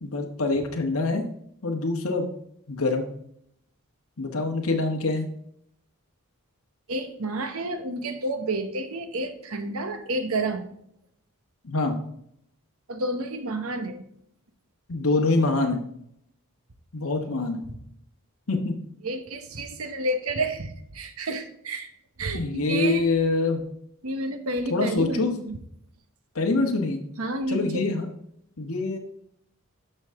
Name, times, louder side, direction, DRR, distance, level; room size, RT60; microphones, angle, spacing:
voice 1, 0.0-1.2 1.6-2.3 2.7-3.1 4.2-5.3 11.6-11.9 14.9-15.8 16.9-17.6 18.5-18.7 22.3-23.6 24.7-25.3 26.3-27.0 27.5-28.1 28.6-29.0, left 3 dB, 70° left, 2 dB, 1.3 m, -25 dB
voice 2, 6.9-10.7 12.9-14.0 17.2-17.3 19.0-21.9 22.2-23.1 24.0-25.6 27.2-27.9, right 2 dB, 70° right, 8 dB, 1.1 m, -30 dB
12.5 x 5.6 x 3.7 m, 0.71 s
head